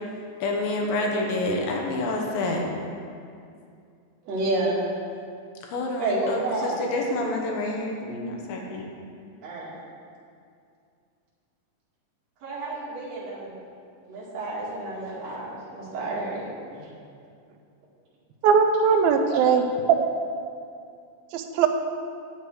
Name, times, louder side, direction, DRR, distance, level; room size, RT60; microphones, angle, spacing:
voice 1, 0.4-2.6 5.6-8.9, left 2 dB, 75° left, 0 dB, 2.7 m, -28 dB
voice 2, 4.2-4.9 6.0-6.9 9.4-9.7 12.4-13.5 14.0-16.8, right 2 dB, 50° right, -7 dB, 3.1 m, -30 dB
voice 3, 18.4-19.6 21.3-21.7, right 6 dB, 85° right, 6 dB, 2.4 m, -20 dB
8.8 x 7.9 x 4.7 m, 2.4 s
omnidirectional pair, 4.2 m